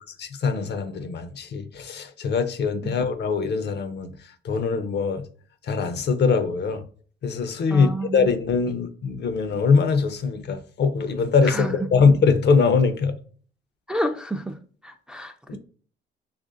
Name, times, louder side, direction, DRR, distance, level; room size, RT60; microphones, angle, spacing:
voice 1, 0.2-4.1 4.4-5.2 5.7-6.8 7.2-13.1 15.5-15.6, left 5 dB, 60° left, 0.6 m, -22 dB
voice 2, 7.7-8.3 11.4-11.8 13.9-14.5 14.8-15.6, right 1 dB, 5° right, 0.3 m, -30 dB
3.0 x 2.5 x 3.8 m
cardioid pair, 90°, 20 cm